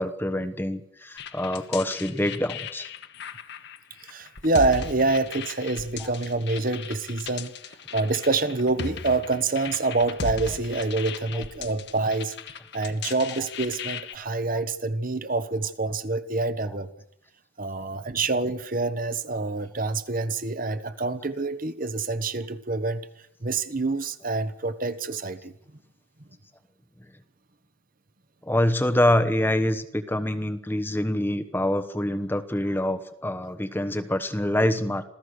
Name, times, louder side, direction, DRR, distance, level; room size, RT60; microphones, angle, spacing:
voice 1, 0.0-2.9 4.9-5.1 11.3-11.4 13.3-13.5 14.5-14.6 15.9-16.0 16.7-16.8 17.8-17.9 28.4-35.1, left 1 dB, 10° left, 7 dB, 1.2 m, -26 dB
sound 1, 1.2-14.2, left 5 dB, 55° left, 1.2 m, -37 dB
voice 2, 4.0-7.5 7.9-12.3 12.7-16.9 17.6-23.0 23.4-25.5, right 3 dB, 40° right, 11 dB, 1.1 m, -26 dB
27.0 x 16.0 x 6.5 m, 0.78 s
head